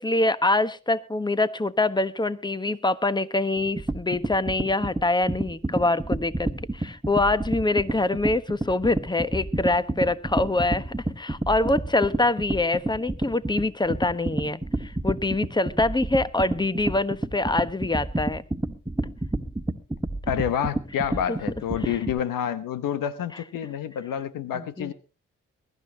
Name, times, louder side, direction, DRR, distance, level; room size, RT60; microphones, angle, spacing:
voice 1, 0.0-18.4 21.3-21.4 21.8-22.0 24.5-24.9, left 2 dB, 15° left, 1.2 m, -25 dB
sound 1, 3.6-22.2, right 2 dB, 10° right, 1.8 m, -29 dB
voice 2, 20.3-24.9, left 9 dB, 80° left, 1.0 m, -28 dB
22.5 x 12.0 x 2.8 m
supercardioid pair, 45°, 33 cm